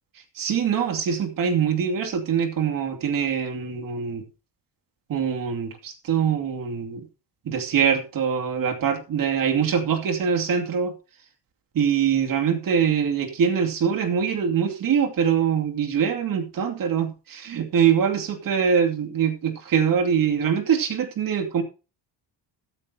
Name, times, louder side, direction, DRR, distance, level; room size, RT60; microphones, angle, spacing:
voice 1, 0.4-4.2 5.1-7.0 7.5-10.9 11.7-21.6, right 7 dB, 50° right, 4 dB, 2.6 m, -23 dB
14.5 x 13.0 x 2.9 m, 0.32 s
cardioid pair, 165°, 44 cm